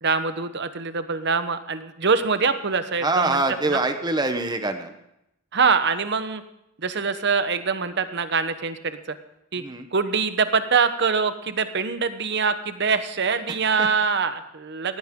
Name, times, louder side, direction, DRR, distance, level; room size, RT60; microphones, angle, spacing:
voice 1, 0.0-3.4 3.7-3.8 5.5-6.4 6.8-9.2 9.5-9.6 9.9-15.0, right 5 dB, 55° right, 11 dB, 1.0 m, -24 dB
voice 2, 3.0-4.9 9.6-9.9 13.5-13.9, right 2 dB, 20° right, 8 dB, 1.0 m, -25 dB
18.0 x 15.5 x 3.7 m, 0.83 s
head